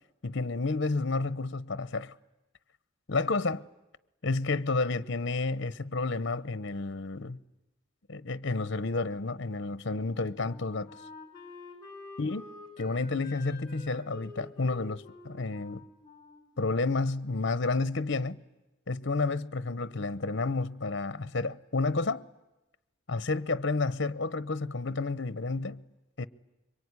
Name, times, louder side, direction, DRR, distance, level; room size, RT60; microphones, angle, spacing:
voice 1, 0.2-2.1 3.1-3.6 4.2-7.4 8.1-10.9 12.2-12.4 12.8-15.8 16.6-18.4 18.9-22.3 23.1-25.8 26.2-26.3, left 3 dB, 60° left, 0.9 m, -30 dB
Wind instrument woodwind instrument, 9.9-17.4, left 2 dB, 20° left, 5.2 m, -49 dB
26.0 x 23.5 x 9.7 m
head